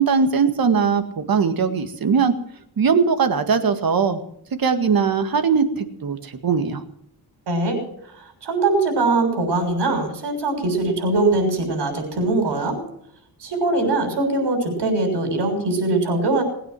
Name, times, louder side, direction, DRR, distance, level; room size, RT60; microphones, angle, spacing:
voice 1, 0.0-2.3 2.8-4.2 4.6-6.8, right 6 dB, 60° right, 8 dB, 2.0 m, -20 dB
voice 2, 7.5-7.9 8.2-12.8 13.4-16.4, right 2 dB, 80° right, 4 dB, 6.6 m, -22 dB
20.5 x 9.2 x 7.7 m, 0.70 s
wide cardioid pair, 120°, 40 cm